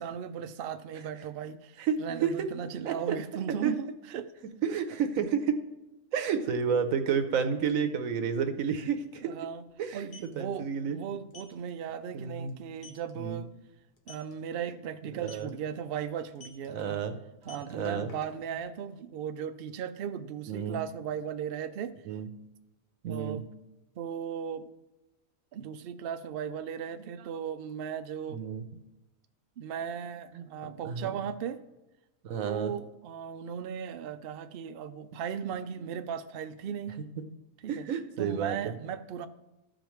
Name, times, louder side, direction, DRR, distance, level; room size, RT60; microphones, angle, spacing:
voice 1, 0.0-4.3 4.7-4.8 9.2-9.6 9.9-13.5 14.1-17.0 17.4-21.9 23.1-23.4 24.0-24.7 25.5-28.4 29.6-31.6 32.4-37.0 37.6-37.9 38.2-39.3, right 8 dB, 60° right, 0.6 m, -37 dB
voice 2, 1.8-2.5 2.8-3.2 3.6-3.7 4.6-5.6 6.1-9.3 9.8-11.0 12.1-12.5 13.1-13.4 15.2-15.5 16.7-17.2 17.7-18.1 20.5-20.8 22.1-22.3 23.0-23.4 28.3-28.6 30.3-30.5 30.8-31.1 32.2-32.7 37.7-38.5, right 7 dB, 80° right, 1.2 m, -30 dB
sound 1, 8.3-8.4 8.6-8.8 9.9-10.3 11.3-11.5 12.0-12.1 12.5-12.6 12.8-13.1 14.0-14.3 15.2-15.5 16.4-16.7 17.3-18.6, left 4 dB, 40° left, 1.1 m, -49 dB
14.0 x 5.1 x 3.1 m
omnidirectional pair, 1.4 m